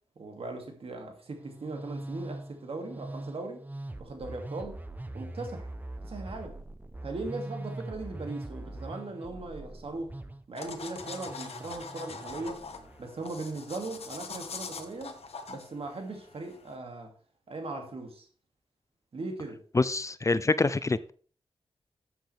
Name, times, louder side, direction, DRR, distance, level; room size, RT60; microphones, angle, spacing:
voice 1, 0.2-3.6 4.0-4.8 5.1-5.7 6.0-6.5 7.0-10.1 10.5-12.6 13.0-15.2 15.5-17.1 17.5-18.3 19.1-19.6, right 3 dB, 70° right, 2.5 m, -39 dB
Musical instrument, 1.3-13.1, right 1 dB, 15° right, 0.8 m, -42 dB
sound 1, 10.6-16.8, left 5 dB, 80° left, 1.2 m, -43 dB
voice 2, 19.7-21.1, left 3 dB, 30° left, 0.5 m, -26 dB
13.5 x 7.7 x 3.5 m
wide cardioid pair, 95°, 10 cm